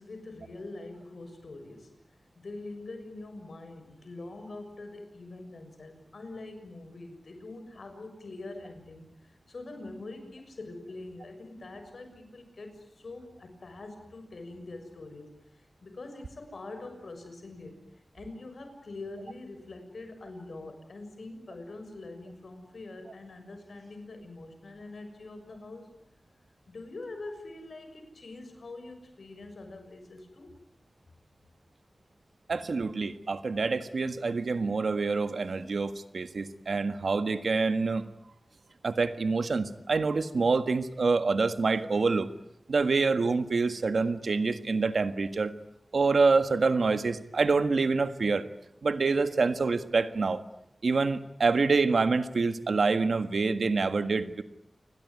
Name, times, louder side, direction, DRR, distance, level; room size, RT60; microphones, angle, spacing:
voice 1, 0.0-1.9 2.3-25.9 26.7-30.5, left 2 dB, 80° left, 7 dB, 6.7 m, -44 dB
voice 2, 32.5-38.1 38.8-42.3 42.7-45.5 45.9-48.5 48.8-50.4 50.8-54.4, right 4 dB, 85° right, 10 dB, 1.7 m, -26 dB
28.5 x 21.0 x 9.5 m, 0.79 s
wide cardioid pair, 75°, 0 cm